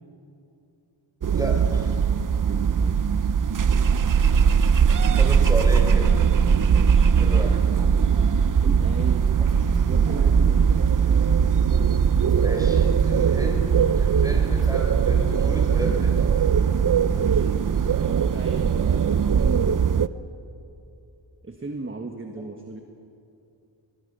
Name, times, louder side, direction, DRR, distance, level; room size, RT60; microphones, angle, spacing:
sound 1, 1.2-20.1, right 7 dB, 45° right, 0.6 m, -20 dB
voice 1, 1.3-1.9 5.1-6.2 7.2-7.6 12.4-16.2, equal, 5° right, 1 dB, 4.6 m, -32 dB
voice 2, 2.3-3.0 6.7-7.2 8.6-9.5 9.8-11.2 17.1-17.5 18.0-20.0 21.4-22.8, right 3 dB, 25° right, 4 dB, 1.4 m, -37 dB
sound 2, 9.1-16.4, left 1 dB, 10° left, 5.7 m, -50 dB
24.0 x 20.0 x 6.8 m, 2.7 s
wide cardioid pair, 105°, 47 cm